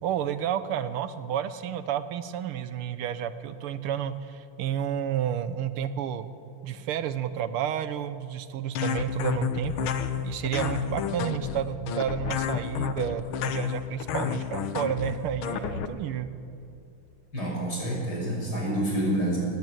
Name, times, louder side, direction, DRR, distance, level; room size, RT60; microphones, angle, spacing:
voice 1, 0.0-6.3 6.6-9.9 10.2-16.3, right 9 dB, 85° right, 12 dB, 1.7 m, -31 dB
sound 1, 8.8-15.9, left 9 dB, 75° left, 1.7 m, -30 dB
voice 2, 17.3-19.4, right 1 dB, 45° left, -3 dB, 6.9 m, -28 dB
19.0 x 15.5 x 9.2 m, 2.5 s
omnidirectional pair, 2.4 m